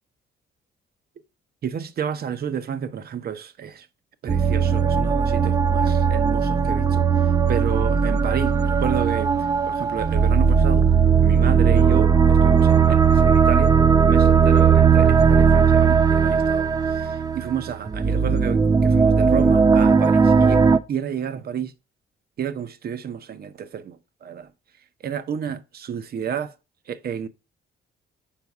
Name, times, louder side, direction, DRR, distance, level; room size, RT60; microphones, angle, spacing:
voice 1, 1.6-3.9 4.2-9.3 9.6-10.9 11.2-20.6 20.9-21.7 22.4-24.5 25.0-26.5 26.9-27.3, right 8 dB, 50° right, 0.7 m, -31 dB
sound 1, 4.3-20.8, right 6 dB, 20° right, 0.4 m, -18 dB
5.7 x 4.5 x 4.7 m
cardioid pair, 90°, 20 cm